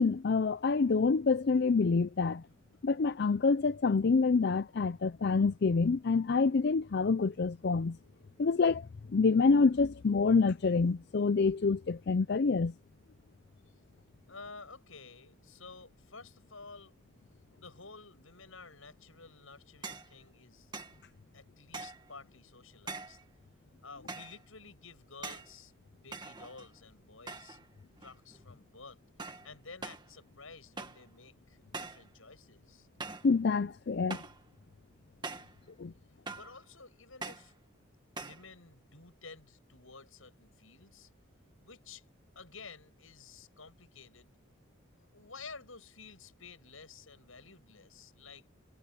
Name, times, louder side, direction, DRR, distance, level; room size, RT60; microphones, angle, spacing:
voice 1, 0.0-2.4 2.8-8.0 8.4-8.9 9.1-12.7 33.2-34.2 35.8-35.9, left 4 dB, 50° left, 0.4 m, -27 dB
voice 2, 14.3-16.9 17.6-20.7 21.3-23.2 23.8-27.6 28.0-29.0 29.4-32.9 36.3-37.5 38.2-41.1 41.6-42.0 42.3-44.3 45.0-48.5, left 4 dB, 75° left, 7.9 m, -52 dB
sound 1, 19.8-20.1 20.7-21.0 21.7-22.1 22.9-23.2 24.1-24.4 25.2-25.5 26.1-26.8 27.3-27.7 28.0-28.4 29.2-29.5 29.8-30.1 30.8-31.1 31.7-32.1 33.0-33.3 34.1-34.4 35.2-35.6 36.3-36.6 37.2-37.5 38.2-38.5, right 4 dB, 20° right, 1.8 m, -43 dB
head